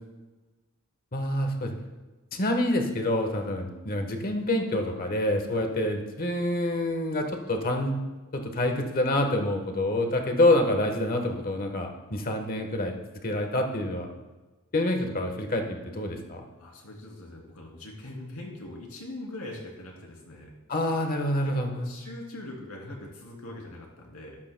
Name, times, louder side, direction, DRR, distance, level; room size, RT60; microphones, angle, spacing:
voice 1, 1.1-1.8 2.3-8.0 8.3-13.0 13.2-14.1 14.7-16.4 20.7-21.9, left 1 dB, 40° left, 4 dB, 1.2 m, -27 dB
voice 2, 16.6-20.5 21.4-24.4, left 1 dB, 80° left, -1 dB, 2.9 m, -42 dB
13.0 x 12.0 x 2.2 m, 1.2 s
head